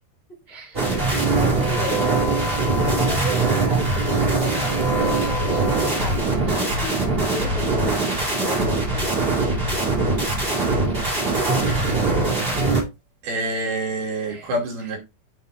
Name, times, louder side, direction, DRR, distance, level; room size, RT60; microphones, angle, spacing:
voice 1, 0.5-0.9 1.2-2.3 2.9-9.4 11.7-11.8 14.3-14.5, left 1 dB, 30° left, 1.1 m, -34 dB
sound 1, 0.7-12.8, right 3 dB, 15° right, 2.1 m, -22 dB
voice 2, 13.2-15.0, right 1 dB, 75° right, 4.7 m, -26 dB
9.3 x 4.3 x 4.1 m
omnidirectional pair, 4.7 m